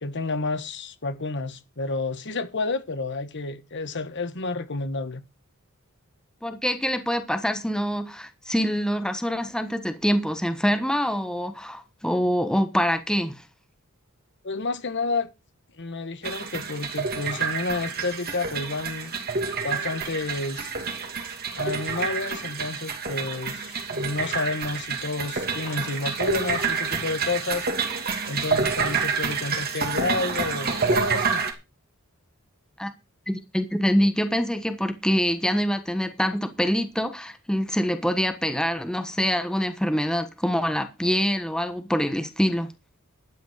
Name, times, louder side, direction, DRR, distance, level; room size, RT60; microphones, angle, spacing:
voice 1, 0.0-5.2 14.4-15.3 15.8-19.2 19.6-20.7 21.5-27.7 28.3-31.4, left 3 dB, 55° left, 1.3 m, -30 dB
voice 2, 6.4-13.4 32.8-32.9 33.3-42.7, equal, 5° left, 1.3 m, -25 dB
sound 1, 16.2-31.5, right 5 dB, 45° right, 2.7 m, -28 dB
12.5 x 9.3 x 5.1 m
head